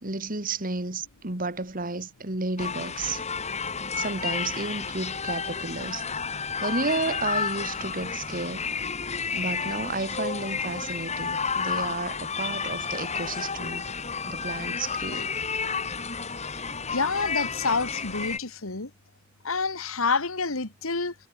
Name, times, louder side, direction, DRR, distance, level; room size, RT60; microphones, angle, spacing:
voice 1, 0.0-3.2 3.9-8.6 9.3-13.9 14.3-15.4, right 3 dB, 40° right, 2.6 m, -32 dB
sound 1, 2.6-18.4, left 5 dB, 30° left, 4.4 m, -31 dB
voice 2, 16.9-18.9 19.4-21.1, left 4 dB, 80° left, 2.4 m, -28 dB
head